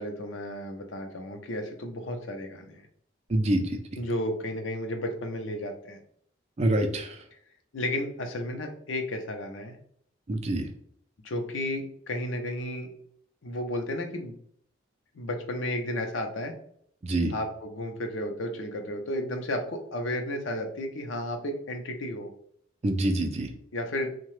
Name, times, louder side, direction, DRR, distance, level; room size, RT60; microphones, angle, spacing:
voice 1, 0.0-2.9 4.0-6.0 7.7-9.8 11.2-12.9 13.4-14.4 15.1-16.5 17.3-22.3 23.7-24.1, left 1 dB, 85° left, 4 dB, 0.6 m, -33 dB
voice 2, 3.3-3.8 6.6-7.2 10.3-10.7 17.0-17.3 22.8-23.5, right 1 dB, 35° right, 5 dB, 0.4 m, -26 dB
2.8 x 2.2 x 3.1 m, 0.64 s
head